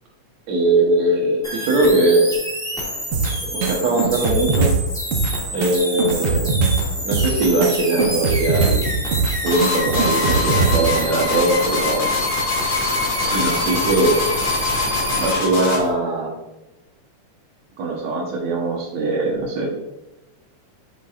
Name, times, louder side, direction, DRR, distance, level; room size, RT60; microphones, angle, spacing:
voice 1, 0.5-2.3 3.5-4.7 5.5-6.5 7.1-8.8 9.4-12.2 13.3-14.2 15.2-16.3 17.8-19.7, right 2 dB, 65° right, -1 dB, 2.1 m, -20 dB
sound 1, 1.4-15.3, equal, 5° left, 0.7 m, -28 dB
sound 2, 3.1-11.0, right 4 dB, 85° right, 1.3 m, -22 dB
sound 3, 9.5-15.9, left 4 dB, 40° left, 2.2 m, -24 dB
8.8 x 6.0 x 2.4 m, 1.0 s
omnidirectional pair, 4.0 m